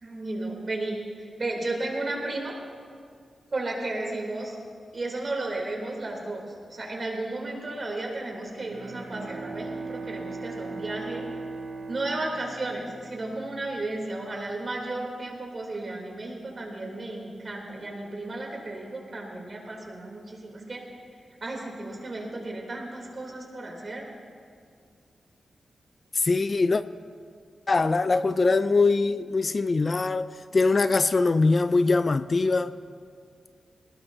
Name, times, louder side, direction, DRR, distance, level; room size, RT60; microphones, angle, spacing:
voice 1, 0.0-2.5 3.5-4.5 4.9-11.2 11.9-20.8 21.4-24.1, right 2 dB, 45° right, -1 dB, 3.3 m, -34 dB
Bowed string instrument, 8.6-13.5, right 3 dB, 90° right, 1.9 m, -38 dB
voice 2, 26.1-26.8 27.7-30.3 30.5-32.7, left 3 dB, 40° left, 13 dB, 0.4 m, -22 dB
20.5 x 19.0 x 2.8 m, 2.2 s
cardioid pair, 85°, 0 cm